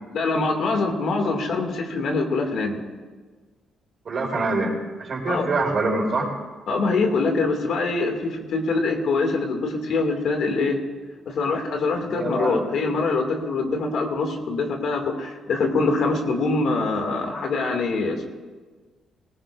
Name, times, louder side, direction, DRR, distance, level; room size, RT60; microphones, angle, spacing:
voice 1, 0.1-2.8 5.3-5.5 6.7-10.8 11.3-18.2, left 3 dB, 65° left, 3 dB, 2.3 m, -24 dB
voice 2, 4.0-4.7 5.0-6.3 12.1-12.6, right 3 dB, 50° right, -1 dB, 4.3 m, -24 dB
19.0 x 18.0 x 2.6 m, 1.4 s
cardioid pair, 90°, 0 cm